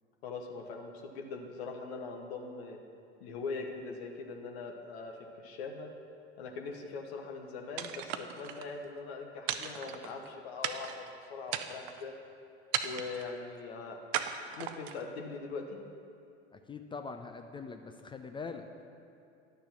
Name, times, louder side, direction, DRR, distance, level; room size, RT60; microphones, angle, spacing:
voice 1, 0.2-2.8 3.2-5.9 6.4-12.1 12.8-14.0 14.5-15.6, left 4 dB, 60° left, 3 dB, 1.0 m, -41 dB
sound 1, 7.8-8.7 9.5-10.3 10.6-11.1 11.5-12.0 12.7-13.3 14.1-15.0, right 10 dB, 50° right, 0.7 m, -36 dB
voice 2, 16.5-18.7, left 4 dB, 15° left, 6 dB, 0.4 m, -43 dB
10.5 x 6.8 x 5.8 m, 2.5 s
hypercardioid pair, 85°, 35 cm